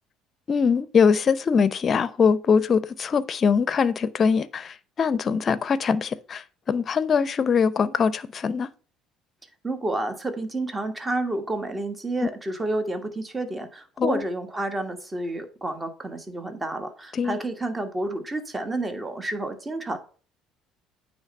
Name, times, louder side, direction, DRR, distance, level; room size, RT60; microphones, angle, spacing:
voice 1, 0.5-8.7 14.0-14.2 17.1-17.4, left 6 dB, 45° left, 0.6 m, -22 dB
voice 2, 9.6-20.0, right 2 dB, 20° right, 1.4 m, -30 dB
8.9 x 3.2 x 5.3 m
hypercardioid pair, 65°, 0 cm